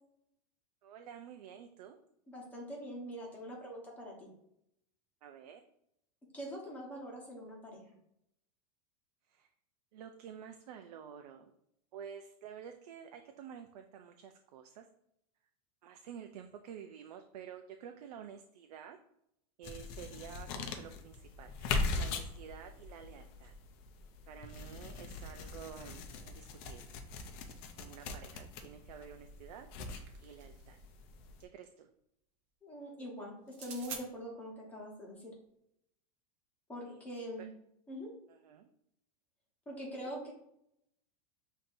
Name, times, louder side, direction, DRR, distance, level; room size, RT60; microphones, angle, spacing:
voice 1, 0.8-2.0 5.2-5.6 9.3-9.5 9.9-11.5 11.9-14.9 15.8-19.0 19.6-23.5 24.3-27.0 27.7-30.8 31.4-31.9 36.8-37.0 38.3-38.7 40.0-40.1, right 8 dB, 85° right, 6 dB, 0.5 m, -50 dB
voice 2, 2.3-4.3 6.3-7.8 32.6-35.3 36.7-37.5 37.9-38.1 39.7-40.3, equal, 10° left, -3 dB, 1.0 m, -43 dB
sound 1, 19.6-31.4, left 3 dB, 35° left, 0.5 m, -41 dB
sound 2, 29.4-30.7 33.5-34.0, right 6 dB, 35° right, 0.6 m, -47 dB
7.0 x 2.7 x 2.6 m, 0.77 s
supercardioid pair, 170°, 20 cm